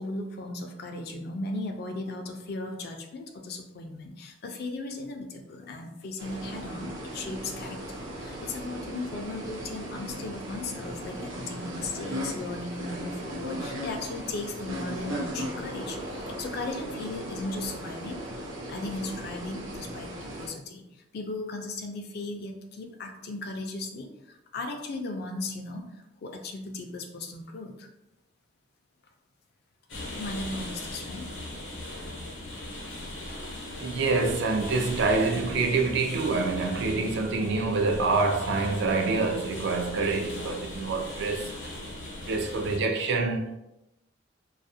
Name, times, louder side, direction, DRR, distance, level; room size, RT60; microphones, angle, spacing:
voice 1, 0.0-20.1 20.4-27.9 30.1-31.3, left 2 dB, 50° left, 0.4 m, -37 dB
sound 1, 6.2-20.5, equal, 85° right, 0.7 m, -37 dB
sound 2, 29.9-42.8, left 1 dB, 70° left, 0.7 m, -38 dB
voice 2, 33.8-41.5 42.3-43.6, right 3 dB, 60° right, 0.3 m, -26 dB
2.3 x 2.0 x 2.6 m
head